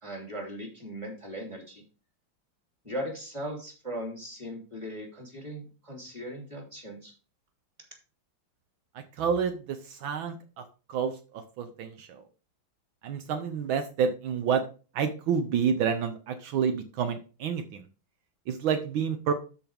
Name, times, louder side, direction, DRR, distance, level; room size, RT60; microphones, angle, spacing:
voice 1, 0.0-1.8 2.8-7.1, equal, 15° right, -1 dB, 2.9 m, -38 dB
voice 2, 8.9-10.6 10.9-12.2 13.0-14.6 14.9-17.9 18.5-19.3, right 7 dB, 75° right, 7 dB, 1.6 m, -29 dB
13.0 x 4.7 x 3.4 m, 0.35 s
omnidirectional pair, 2.2 m